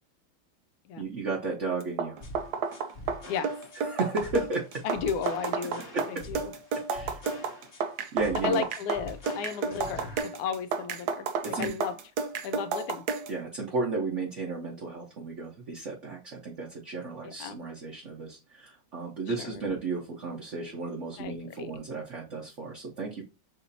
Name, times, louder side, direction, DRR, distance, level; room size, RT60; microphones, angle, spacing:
voice 1, 1.0-2.2 3.8-4.8 5.8-6.3 6.9-7.2 8.1-8.6 11.4-11.7 13.3-23.2, right 3 dB, 45° right, 1.2 m, -33 dB
sound 1, 1.8-13.4, right 5 dB, 65° right, 1.1 m, -32 dB
sound 2, 2.2-10.2, left 1 dB, 35° left, 1.0 m, -45 dB
voice 2, 4.8-5.8 6.1-6.5 8.4-10.1 10.4-11.9 12.4-13.0 17.2-17.6 19.4-19.7 21.2-21.7, left 6 dB, 80° left, 1.4 m, -33 dB
6.8 x 2.8 x 2.7 m
omnidirectional pair, 2.2 m